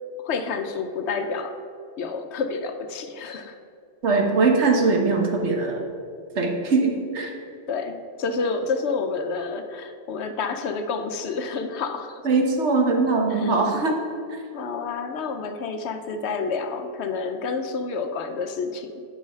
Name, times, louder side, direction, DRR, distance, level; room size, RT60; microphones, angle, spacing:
voice 1, 0.2-1.6 2.0-3.6 7.7-12.2 13.3-13.6 14.5-19.0, left 4 dB, 70° left, 7 dB, 0.9 m, -29 dB
voice 2, 4.0-5.8 6.3-7.3 12.2-14.0 14.3-14.4, right 3 dB, 70° right, 2 dB, 1.4 m, -21 dB
9.7 x 4.8 x 5.5 m, 2.4 s
omnidirectional pair, 1.2 m